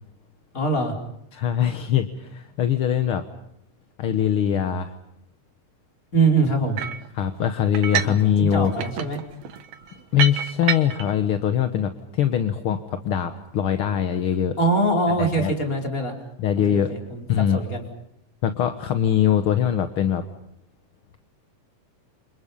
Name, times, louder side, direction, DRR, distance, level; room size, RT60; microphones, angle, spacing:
voice 1, 0.5-0.9 6.1-6.9 8.0-9.2 14.6-16.1 16.7-17.2 17.5-17.8, right 3 dB, 25° left, 2 dB, 4.7 m, -23 dB
voice 2, 1.3-3.2 4.0-4.9 7.1-8.7 10.1-14.5 15.2-15.5 16.4-16.9 17.3-17.6 18.4-20.2, left 9 dB, 55° left, 8 dB, 1.8 m, -22 dB
sound 1, 6.8-7.1 7.7-8.2 8.5-11.1, right 8 dB, 70° right, 2.6 m, -28 dB
29.0 x 27.5 x 5.5 m, 0.77 s
omnidirectional pair, 3.3 m